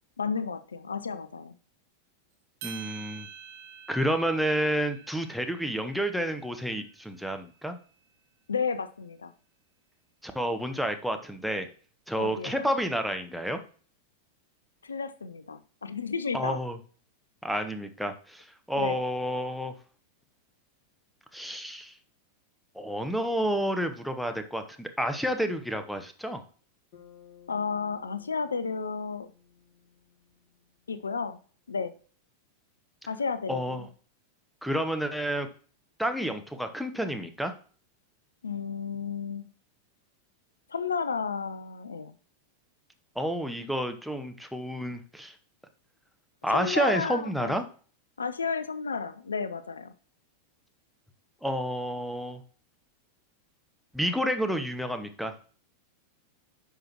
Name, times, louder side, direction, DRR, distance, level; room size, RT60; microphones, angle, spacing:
voice 1, 0.2-1.5 8.5-9.3 12.2-12.7 14.8-16.6 18.8-19.0 27.5-29.3 30.9-31.4 31.7-31.9 33.1-33.9 38.4-39.5 40.7-42.1 46.5-47.5 48.2-49.9, left 5 dB, 75° left, 14 dB, 0.5 m, -32 dB
voice 2, 2.6-3.3 3.9-7.8 10.2-11.7 12.1-13.6 16.3-16.8 17.4-19.7 21.3-21.9 22.8-26.4 33.5-33.9 34.6-35.5 36.0-37.5 43.2-45.3 46.4-47.6 51.4-52.4 53.9-55.3, equal, ahead, 6 dB, 0.9 m, -30 dB
sound 1, 2.6-7.0, right 8 dB, 50° right, 1.4 m, -47 dB
Bass guitar, 26.9-31.3, left 9 dB, 45° left, 2.3 m, -58 dB
10.0 x 5.7 x 3.0 m, 0.42 s
figure-of-eight pair, 90°, 0 cm